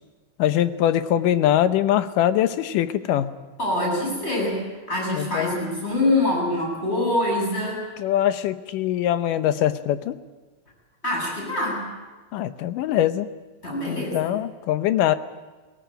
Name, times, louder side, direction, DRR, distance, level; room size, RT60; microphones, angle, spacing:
voice 1, 0.4-3.3 5.1-5.5 8.0-10.2 12.3-13.3 13.9-15.2, left 11 dB, 75° left, 11 dB, 2.3 m, -22 dB
voice 2, 3.6-4.6 4.9-7.8 11.0-11.8 13.6-14.3, left 1 dB, 15° left, -2 dB, 8.3 m, -24 dB
19.0 x 18.5 x 9.0 m, 1.3 s
omnidirectional pair, 4.2 m